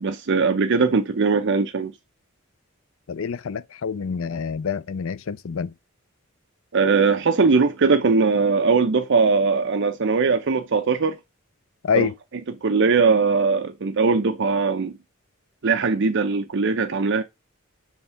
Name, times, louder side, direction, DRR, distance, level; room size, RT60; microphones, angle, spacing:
voice 1, 0.0-2.0 6.7-11.2 11.9-12.1 12.5-15.0 15.6-17.2, right 4 dB, 60° right, 0.6 m, -20 dB
voice 2, 3.1-5.7 11.8-12.1, left 6 dB, 70° left, 0.5 m, -26 dB
7.2 x 3.5 x 5.6 m
head